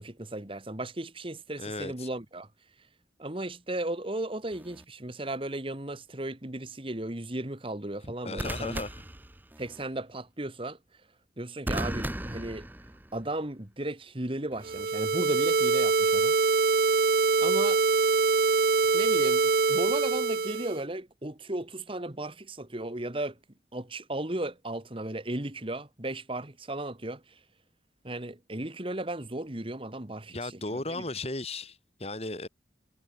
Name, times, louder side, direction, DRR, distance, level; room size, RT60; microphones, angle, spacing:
voice 1, 0.0-2.5 3.2-8.8 9.6-10.8 11.4-12.6 13.1-16.3 17.4-17.8 18.9-23.4 23.7-27.2 28.0-31.0, right 1 dB, 30° right, 1.7 m, -35 dB
voice 2, 1.6-2.1 8.0-8.9 30.3-32.5, left 2 dB, 35° left, 4.6 m, -36 dB
sound 1, 4.5-4.8 8.4-9.8 11.7-13.3 14.5-14.8, right 1 dB, 10° right, 1.0 m, -36 dB
sound 2, 14.6-20.8, right 4 dB, 55° right, 0.6 m, -24 dB
head